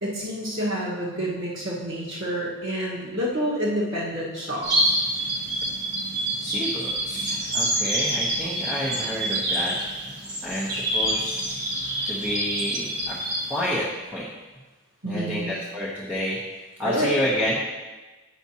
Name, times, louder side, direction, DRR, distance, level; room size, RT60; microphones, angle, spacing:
voice 1, 0.0-5.0 15.0-15.5 16.8-17.2, equal, 70° right, -5 dB, 1.4 m, -28 dB
sound 1, 4.6-13.7, right 1 dB, 50° right, 1.6 m, -27 dB
voice 2, 6.4-9.7 10.4-11.6 12.0-13.2 13.5-13.9 14.1-14.2 15.1-16.4 16.8-17.6, equal, 5° right, -7 dB, 0.7 m, -29 dB
8.2 x 5.7 x 2.8 m, 1.2 s
head